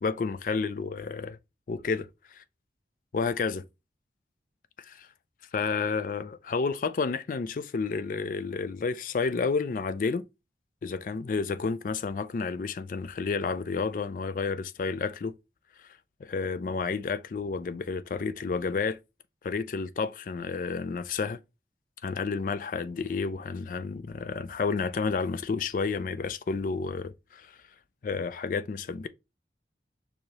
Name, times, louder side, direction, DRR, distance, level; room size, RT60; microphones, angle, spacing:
voice 1, 0.0-1.4 1.7-2.1 3.1-3.6 4.8-5.1 5.5-10.3 10.8-15.3 16.2-19.0 19.4-21.4 22.0-27.6 28.0-29.1, left 4 dB, 50° left, 0.3 m, -30 dB
4.7 x 2.7 x 2.8 m
head